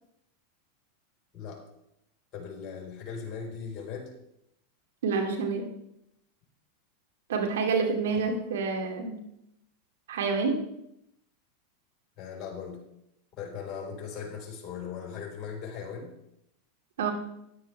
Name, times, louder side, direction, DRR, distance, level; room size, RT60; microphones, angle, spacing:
voice 1, 2.3-4.1 8.1-8.4 12.2-12.8 13.4-16.1, left 6 dB, 35° left, -1 dB, 4.4 m, -39 dB
voice 2, 5.0-5.7 7.3-9.2 10.1-10.6 17.0-17.1, right 4 dB, 75° right, 2 dB, 2.6 m, -28 dB
13.5 x 10.5 x 3.5 m, 0.80 s
hypercardioid pair, 95°, 0 cm